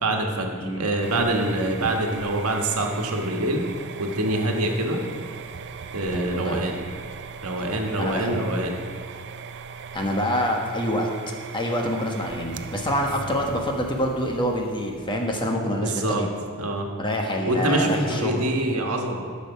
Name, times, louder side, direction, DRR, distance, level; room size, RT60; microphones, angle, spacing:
voice 1, 0.0-3.6 4.0-5.0 5.9-6.8 7.4-8.8 15.8-16.2 16.6-16.9 17.4-19.2, right 1 dB, 80° right, 2 dB, 1.4 m, -25 dB
sound 1, 1.0-15.5, right 5 dB, 55° right, 0.5 m, -39 dB
voice 2, 6.1-6.6 8.0-8.4 9.9-11.1 11.5-16.3 17.0-18.5, equal, 20° left, 1 dB, 1.2 m, -26 dB
11.5 x 6.7 x 5.9 m, 2.1 s
head